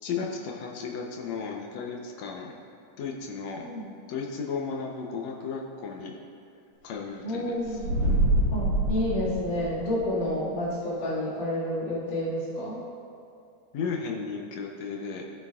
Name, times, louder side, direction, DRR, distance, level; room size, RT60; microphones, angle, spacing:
voice 1, 0.0-2.5 3.0-3.7 4.1-6.2 6.8-7.8 13.7-15.2, left 5 dB, 70° left, 0 dB, 1.9 m, -34 dB
voice 2, 3.6-3.9 7.2-7.9 8.5-12.8, left 1 dB, 85° left, -9 dB, 3.7 m, -30 dB
sound 1, 7.7-10.1, right 1 dB, 35° right, 1.7 m, -25 dB
16.5 x 6.6 x 2.4 m, 2.4 s
omnidirectional pair, 3.6 m